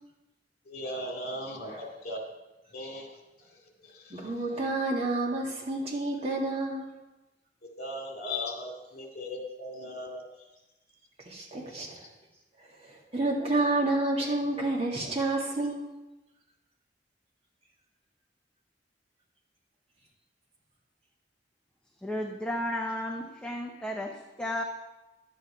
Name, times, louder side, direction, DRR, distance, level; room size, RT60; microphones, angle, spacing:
voice 1, 0.7-2.2 2.7-3.1 3.9-4.0 7.8-10.2, left 1 dB, 60° left, 0 dB, 2.3 m, -37 dB
voice 2, 4.1-6.9 11.3-12.0 12.8-15.9, right 2 dB, 35° right, -3 dB, 2.0 m, -29 dB
voice 3, 22.0-24.6, left 1 dB, 5° left, 1 dB, 0.7 m, -33 dB
11.0 x 8.7 x 4.4 m, 1.0 s
head